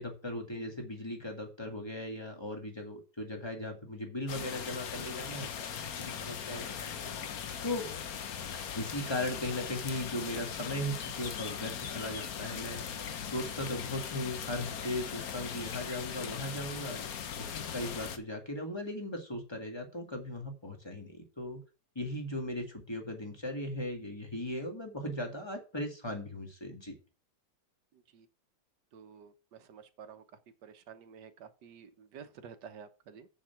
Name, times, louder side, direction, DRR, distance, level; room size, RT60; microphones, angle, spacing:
voice 1, 0.0-5.5 6.0-7.1 7.6-7.9 8.8-13.0 13.3-17.0 17.7-21.6 22.0-27.0, left 1 dB, 15° left, 2.0 m, -38 dB
sound 1, 4.3-18.2, left 8 dB, 60° left, 1.3 m, -39 dB
voice 2, 28.9-30.2 30.6-33.3, right 7 dB, 70° right, 1.6 m, -51 dB
7.2 x 7.1 x 5.8 m
omnidirectional pair, 2.0 m